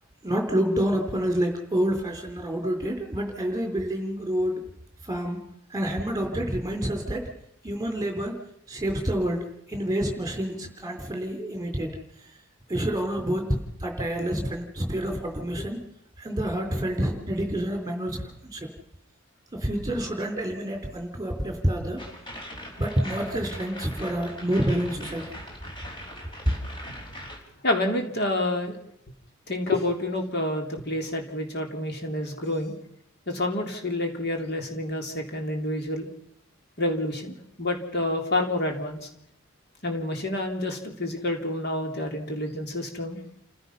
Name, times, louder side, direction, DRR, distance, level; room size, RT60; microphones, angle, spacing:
voice 1, 0.2-4.7 5.0-5.4 5.7-7.3 7.6-8.4 8.7-12.0 12.7-15.8 16.2-18.7 19.5-22.0 22.8-25.3, right 1 dB, 15° right, 3 dB, 4.1 m, -28 dB
sound 1, 22.0-27.4, equal, 20° left, 4.9 m, -40 dB
voice 2, 27.6-28.8 29.5-32.7 33.3-36.1 36.8-39.1 39.8-43.2, left 1 dB, 50° left, 3 dB, 3.4 m, -28 dB
29.5 x 16.0 x 5.8 m, 0.76 s
head